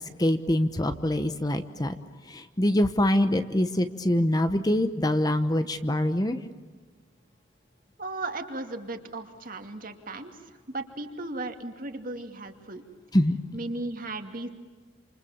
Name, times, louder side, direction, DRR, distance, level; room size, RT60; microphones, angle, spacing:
voice 1, 0.2-1.9 2.3-6.4 13.1-13.3, left 1 dB, 20° left, 9 dB, 1.0 m, -24 dB
voice 2, 8.0-12.8 13.5-14.5, right 2 dB, 45° right, 5 dB, 2.5 m, -36 dB
28.5 x 27.5 x 7.2 m, 1.4 s
head